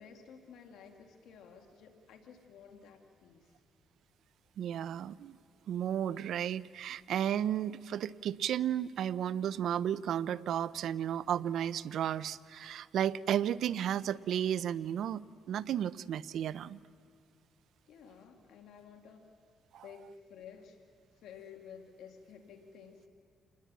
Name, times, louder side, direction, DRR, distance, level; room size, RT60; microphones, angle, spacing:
voice 1, 0.0-3.5 17.9-19.3 19.8-20.9 21.1-23.1, left 7 dB, 80° left, 4 dB, 2.0 m, -53 dB
voice 2, 4.6-5.4 5.7-15.2 15.5-16.8 19.7-19.8, right 10 dB, 70° right, 18 dB, 0.5 m, -33 dB
27.5 x 20.5 x 7.4 m, 2.2 s
cardioid pair, 90°, 0 cm